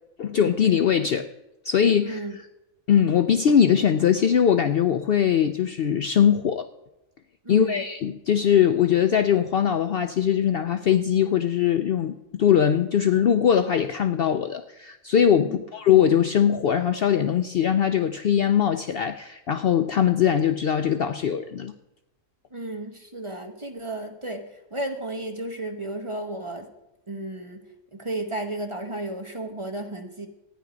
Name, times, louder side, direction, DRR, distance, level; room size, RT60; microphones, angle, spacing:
voice 1, 0.2-1.3 1.6-2.4 2.9-6.7 7.5-21.7, left 8 dB, 60° left, 9 dB, 0.6 m, -21 dB
voice 2, 2.0-2.4 7.4-7.8 15.4-15.6 22.5-24.4 24.7-26.7 27.1-27.6 27.9-30.3, right 2 dB, 25° right, 5 dB, 0.9 m, -33 dB
13.5 x 9.6 x 5.1 m, 0.93 s
omnidirectional pair, 1.4 m